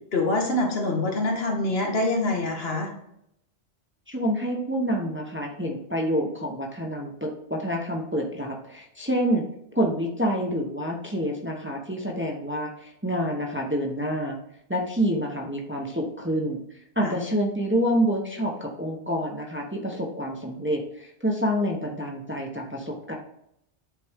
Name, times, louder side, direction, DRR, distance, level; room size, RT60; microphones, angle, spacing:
voice 1, 0.1-2.9 17.0-17.1, left 2 dB, 70° left, 1 dB, 1.6 m, -25 dB
voice 2, 4.1-9.4 9.7-14.4 14.7-16.6 17.0-23.1, equal, 15° right, 0 dB, 0.8 m, -27 dB
8.2 x 4.2 x 3.5 m, 0.77 s
omnidirectional pair, 1.0 m